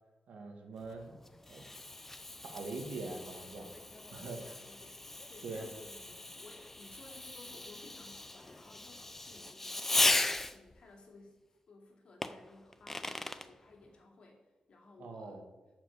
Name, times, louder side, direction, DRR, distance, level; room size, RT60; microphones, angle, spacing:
voice 1, 0.3-1.1 1.5-1.6 2.4-3.7 4.1-4.4 5.4-5.7 15.0-15.4, right 3 dB, 85° right, 3 dB, 2.0 m, -42 dB
Fireworks, 0.9-10.8 12.2-13.5, left 2 dB, 15° left, 0.5 m, -37 dB
voice 2, 4.2-5.0 5.3-10.2 10.5-15.4, left 2 dB, 55° left, 0 dB, 2.7 m, -57 dB
12.5 x 5.9 x 6.7 m, 1.2 s
wide cardioid pair, 165°, 2 cm